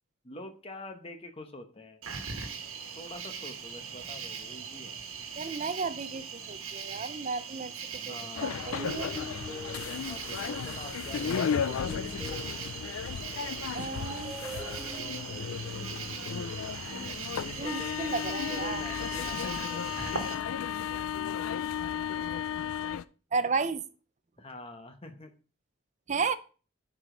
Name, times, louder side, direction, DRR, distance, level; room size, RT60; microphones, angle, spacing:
voice 1, 0.2-2.0 3.0-5.0 8.1-8.6 10.0-12.2 17.4-20.0 24.4-25.3, left 1 dB, 25° left, 1.0 m, -45 dB
Cricket, 2.0-20.3, right 6 dB, 80° right, 1.3 m, -40 dB
voice 2, 5.4-9.2 13.7-14.4 17.6-18.8 23.3-23.9 26.1-26.3, right 4 dB, 35° right, 0.4 m, -33 dB
sound 1, 8.4-23.0, left 8 dB, 75° left, 0.4 m, -34 dB
sound 2, 8.6-16.3, left 1 dB, ahead, 2.9 m, -45 dB
9.5 x 5.0 x 3.8 m
head